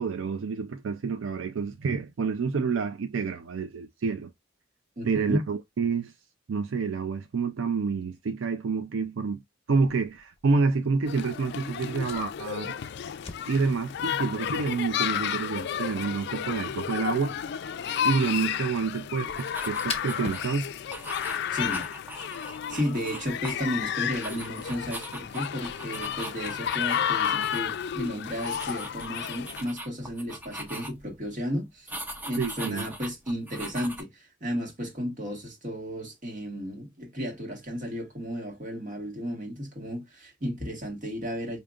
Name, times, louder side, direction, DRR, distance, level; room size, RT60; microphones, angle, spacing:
voice 1, 0.0-4.3 5.1-6.1 6.5-9.4 9.7-12.7 13.5-17.4 18.0-20.7 32.4-32.9, right 5 dB, 80° right, 0.4 m, -28 dB
voice 2, 5.0-5.4 21.5-21.8 22.7-31.9 32.2-41.6, equal, 40° right, 1.6 m, -33 dB
Fire, 9.9-21.4, left 4 dB, 30° left, 1.0 m, -47 dB
sound 1, 11.1-29.7, left 9 dB, 60° left, 0.4 m, -32 dB
sound 2, 19.3-20.5 20.9-23.8 24.1-27.6 27.9-28.0 28.4-31.1 31.9-34.0, right 1 dB, 10° right, 0.6 m, -41 dB
5.0 x 2.8 x 2.4 m
head